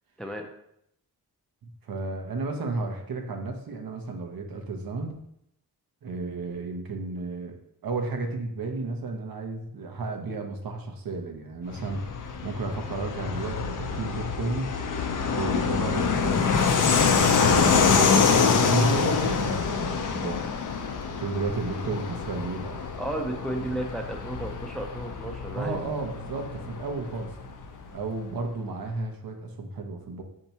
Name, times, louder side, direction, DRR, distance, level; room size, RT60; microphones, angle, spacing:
voice 1, 1.6-5.2 6.0-7.6 7.8-14.7 15.3-16.8 17.2-20.4 21.2-22.8 23.6-23.7 25.1-25.2 25.5-27.3 27.9-30.2, right 3 dB, 65° right, 3 dB, 0.8 m, -33 dB
Fixed-wing aircraft airplane, 11.7-27.9, left 5 dB, 55° left, 0.6 m, -26 dB
voice 2, 23.0-25.8, right 1 dB, ahead, 3 dB, 0.5 m, -33 dB
4.6 x 2.8 x 4.1 m, 0.76 s
cardioid pair, 80°, 38 cm